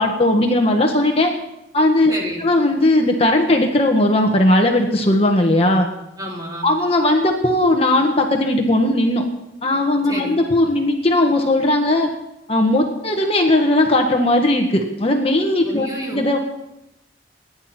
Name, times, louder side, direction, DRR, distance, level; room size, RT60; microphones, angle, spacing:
voice 1, 0.0-1.3 1.7-2.1 2.4-5.9 6.6-9.3 9.6-12.1 12.5-16.4, left 1 dB, 35° left, 2 dB, 1.7 m, -17 dB
voice 2, 2.1-2.4 6.2-6.7 10.1-10.4 15.7-16.2, equal, 20° right, -2 dB, 4.2 m, -29 dB
29.5 x 11.0 x 4.4 m, 0.85 s
head